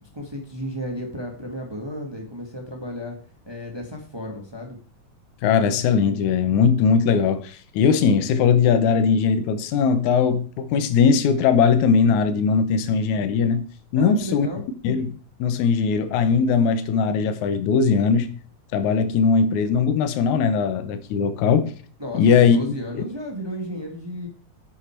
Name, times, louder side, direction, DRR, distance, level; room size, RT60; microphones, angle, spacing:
voice 1, 0.1-3.2 3.5-4.8 13.9-14.6 22.0-24.3, equal, 20° right, 0.6 m, -33 dB
voice 2, 5.4-13.7 13.9-14.5 14.8-15.1 15.4-18.4 18.7-21.7 22.1-22.6 22.9-23.0, left 6 dB, 80° left, 2.2 m, -19 dB
9.3 x 6.7 x 4.4 m
omnidirectional pair, 3.3 m